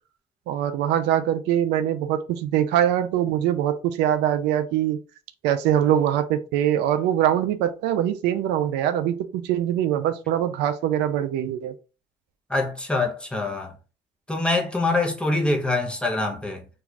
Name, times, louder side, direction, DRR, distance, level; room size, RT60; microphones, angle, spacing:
voice 1, 0.5-5.0 5.4-11.7, right 11 dB, 90° right, 0.4 m, -23 dB
voice 2, 12.5-13.8 14.3-16.7, left 2 dB, 5° left, 0.8 m, -24 dB
2.5 x 2.3 x 3.1 m
cardioid pair, 110°, 17 cm